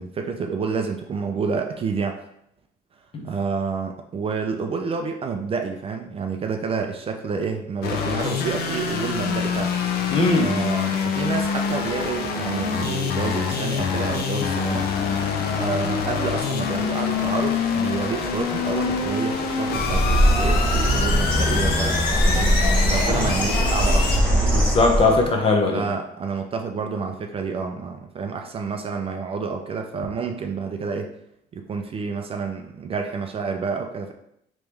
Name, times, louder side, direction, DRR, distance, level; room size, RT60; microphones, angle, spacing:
voice 1, 0.0-2.2 3.2-9.7 10.4-14.9 15.6-22.6 22.9-24.6 25.7-31.1 31.5-34.1, right 5 dB, 35° right, 4 dB, 0.4 m, -29 dB
sound 1, 7.8-24.2, left 6 dB, 70° left, 0.6 m, -25 dB
voice 2, 10.1-10.5 24.5-25.8, left 3 dB, 35° left, 1 dB, 0.7 m, -19 dB
Bird, 19.7-25.3, equal, 5° left, 1.0 m, -21 dB
3.5 x 3.0 x 3.3 m, 0.76 s
cardioid pair, 110°, 17 cm